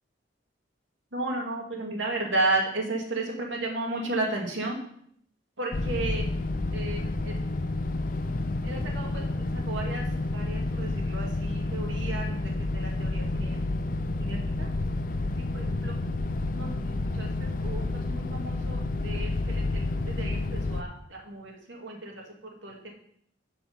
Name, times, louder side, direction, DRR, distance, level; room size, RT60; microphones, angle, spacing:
voice 1, 1.1-4.8 5.6-6.3 6.7-7.4 8.6-10.1 10.3-13.6 14.2-14.7 15.1-16.0 16.5-22.2 22.6-22.9, right 2 dB, 85° right, 0 dB, 2.3 m, -33 dB
sound 1, 5.7-20.8, left 2 dB, 45° left, 0.5 m, -30 dB
10.0 x 5.0 x 5.4 m, 0.67 s
head